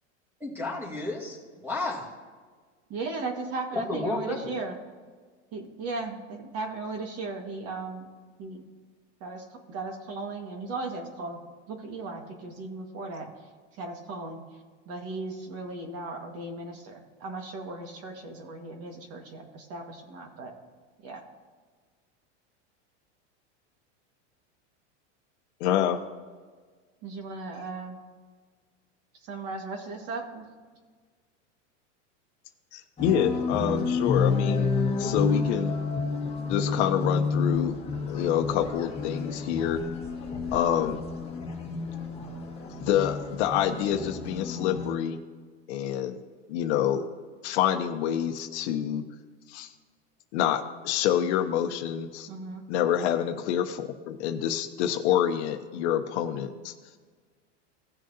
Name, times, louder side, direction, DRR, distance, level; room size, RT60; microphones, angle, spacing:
voice 1, 0.4-2.1 3.7-4.5, left 2 dB, 5° right, -2 dB, 2.5 m, -32 dB
voice 2, 2.9-4.8 5.5-8.1 8.4-8.6 9.2-11.4 11.7-13.3 13.7-14.4 14.8-20.5 21.0-21.2 27.0-28.0 29.2-30.4 52.3-52.6, right 3 dB, 40° right, 4 dB, 1.8 m, -36 dB
voice 3, 25.6-26.0 32.7-34.7 35.0-35.8 36.5-37.8 38.1-39.8 40.5-41.0 42.8-45.2 45.7-46.2 46.5-47.0 47.4-49.0 49.5-49.7 50.3-52.3 52.7-56.7, left 10 dB, 65° left, 7 dB, 1.0 m, -27 dB
sound 1, 33.0-44.9, left 4 dB, 15° left, 1.6 m, -30 dB
17.0 x 6.4 x 2.8 m, 1.5 s
supercardioid pair, 135°, 36 cm